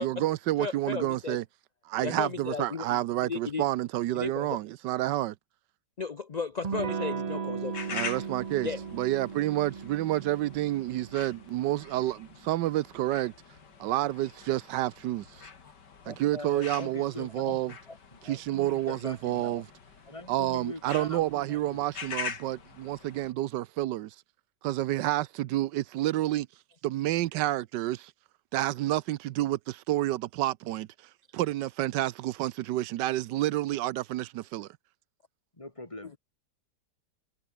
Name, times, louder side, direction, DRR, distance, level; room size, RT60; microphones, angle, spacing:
voice 1, 0.0-1.4 1.9-5.4 7.9-13.3 13.8-15.5 16.1-17.7 18.2-19.6 20.3-24.1 24.6-26.5 26.8-28.1 28.5-30.9 31.3-34.7, right 15 dB, 90° right, 1.3 m, -29 dB
voice 2, 0.6-1.4 2.0-3.6 4.1-4.6 6.0-7.9 8.6-8.8, left 5 dB, 45° left, 0.5 m, -35 dB
Electric guitar / Strum, 6.6-12.0, right 6 dB, 50° right, 0.4 m, -37 dB
sound 1, 7.7-23.3, left 6 dB, 75° left, 2.8 m, -44 dB
voice 3, 16.1-19.7 20.1-21.8 35.6-36.2, left 2 dB, 20° left, 2.0 m, -42 dB
omnidirectional pair, 1.9 m